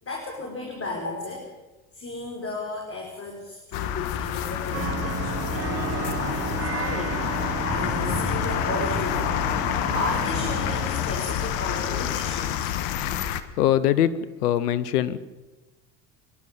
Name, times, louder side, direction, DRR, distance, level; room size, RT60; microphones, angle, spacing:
voice 1, 0.0-1.5 1.9-12.8, left 2 dB, 30° left, 0 dB, 5.2 m, -34 dB
sound 1, 3.7-13.4, left 10 dB, 70° left, 1.5 m, -28 dB
sound 2, 4.7-10.9, right 9 dB, 30° right, 1.0 m, -33 dB
voice 2, 13.6-14.1 14.4-15.2, left 12 dB, 90° left, 15 dB, 1.2 m, -21 dB
25.5 x 11.5 x 9.3 m, 1.1 s
hypercardioid pair, 75°, 45 cm